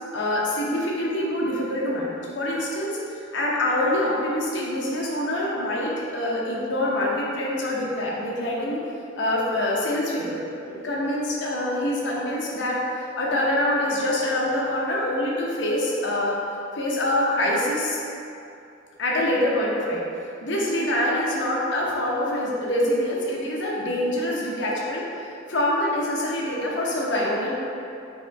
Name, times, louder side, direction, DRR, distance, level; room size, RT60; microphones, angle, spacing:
voice 1, 0.1-8.8 9.2-12.8 13.2-16.4 16.7-18.0 19.0-20.0 20.4-25.1 25.5-27.5, left 1 dB, 60° left, -4 dB, 0.8 m, -25 dB
3.5 x 3.1 x 4.6 m, 2.6 s
head